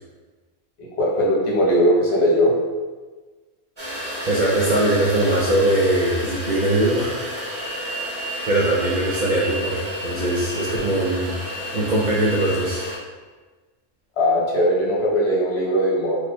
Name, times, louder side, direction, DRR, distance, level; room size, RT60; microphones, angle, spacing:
voice 1, 0.8-2.5 14.2-16.2, equal, 60° left, -4 dB, 1.0 m, -19 dB
sound 1, 3.8-13.0, equal, 25° right, 0.8 m, -31 dB
voice 2, 4.2-7.3 7.7-7.9 8.5-11.3 11.7-12.9, right 1 dB, 55° right, -6 dB, 0.5 m, -21 dB
3.1 x 2.1 x 4.1 m, 1.3 s
omnidirectional pair, 1.3 m